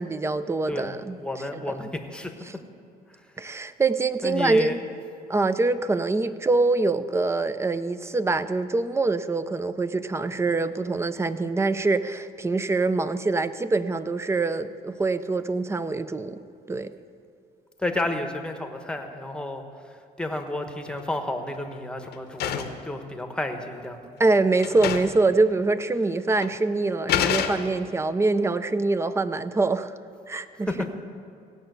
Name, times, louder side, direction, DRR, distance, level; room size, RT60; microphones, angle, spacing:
voice 1, 0.0-1.2 3.4-4.8 5.3-16.4 16.7-16.9 24.2-29.9 30.3-30.9, right 3 dB, 15° right, 13 dB, 0.5 m, -24 dB
voice 2, 1.2-2.3 3.1-3.6 4.2-4.8 17.8-24.1 30.4-30.9, left 1 dB, 5° left, 5 dB, 1.1 m, -32 dB
sound 1, 20.7-21.2 21.5-22.9 23.8-23.9 24.2-24.3 24.6-25.3 25.5-25.6 26.4-26.6 27.1-28.0, left 10 dB, 75° left, 0.8 m, -28 dB
16.5 x 5.7 x 8.0 m, 2.4 s
cardioid pair, 110°, 17 cm